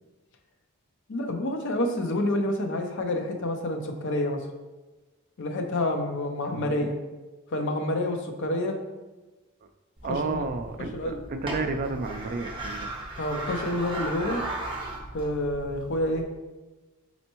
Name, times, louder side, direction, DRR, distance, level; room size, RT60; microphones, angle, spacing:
voice 1, 1.1-4.5 5.4-7.0 7.5-8.8 10.1-10.4 10.9-11.2 13.2-14.4 15.1-16.2, left 1 dB, 55° left, 4 dB, 0.5 m, -28 dB
voice 2, 6.4-6.8 10.0-12.9, right 3 dB, 40° right, 6 dB, 0.4 m, -31 dB
sound 1, 10.0-16.2, right 2 dB, 25° right, 0.8 m, -37 dB
4.3 x 4.2 x 2.9 m, 1.2 s
head